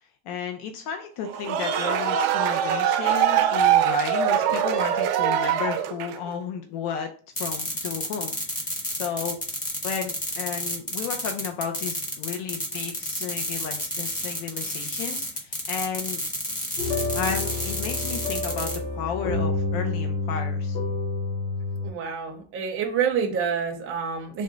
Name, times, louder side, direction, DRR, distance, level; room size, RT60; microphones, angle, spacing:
voice 1, 0.3-7.1 7.4-8.3 8.9-9.4 9.8-16.2 17.1-20.8, left 7 dB, 85° left, 4 dB, 0.6 m, -33 dB
sound 1, 1.3-6.3, right 9 dB, 85° right, 0.6 m, -23 dB
sound 2, 7.4-18.8, left 1 dB, 15° left, 0.6 m, -30 dB
sound 3, 16.8-21.9, left 3 dB, 55° left, 0.8 m, -28 dB
voice 2, 21.8-24.4, right 6 dB, 30° right, 2 dB, 0.5 m, -27 dB
3.6 x 2.1 x 3.8 m, 0.42 s
cardioid pair, 180°, 48 cm